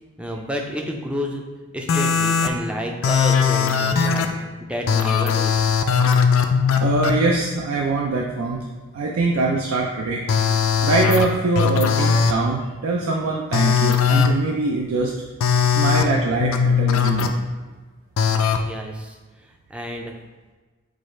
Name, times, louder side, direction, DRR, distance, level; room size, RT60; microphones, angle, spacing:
voice 1, 0.2-1.4 1.7-4.3 4.6-5.7 18.6-19.2 19.7-20.1, equal, 5° right, 1 dB, 0.4 m, -30 dB
sound 1, 1.9-2.5 3.0-4.3 4.9-7.1 10.3-11.2 11.6-12.3 13.5-14.3 15.4-16.0 16.4-17.3 18.2-18.6, left 6 dB, 65° left, 0.4 m, -19 dB
voice 2, 6.8-8.6 8.9-10.2 10.8-15.1 15.6-17.3, right 3 dB, 75° right, -1 dB, 0.4 m, -23 dB
4.9 x 2.4 x 4.2 m, 1.3 s
head